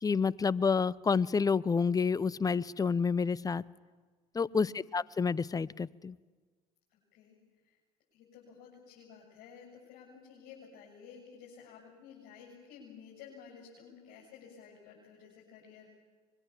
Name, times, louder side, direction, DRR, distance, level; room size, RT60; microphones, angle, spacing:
voice 1, 0.0-3.6 4.3-6.2, left 5 dB, 20° left, 22 dB, 0.6 m, -29 dB
voice 2, 4.3-4.7 6.9-7.4 7.7-7.8 8.1-15.9, left 7 dB, 60° left, -4 dB, 7.4 m, -53 dB
25.0 x 22.0 x 7.4 m, 1.4 s
hypercardioid pair, 70°, 18 cm